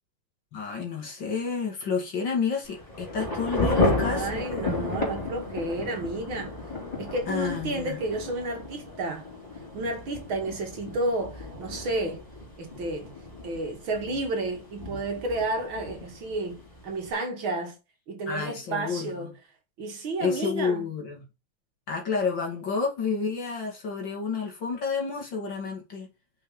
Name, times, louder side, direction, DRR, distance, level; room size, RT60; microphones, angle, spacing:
voice 1, 0.5-4.5 7.3-8.0 18.3-19.3 20.2-21.2 21.9-26.1, left 5 dB, 60° left, 3.0 m, -30 dB
Thunder / Rain, 2.6-17.1, left 2 dB, 15° left, 4.0 m, -33 dB
voice 2, 3.7-6.6 7.0-9.3 9.7-12.2 12.6-13.1 13.4-17.8 18.1-19.3 19.8-20.9, right 2 dB, 65° right, 2.7 m, -31 dB
6.2 x 6.0 x 5.0 m
omnidirectional pair, 2.4 m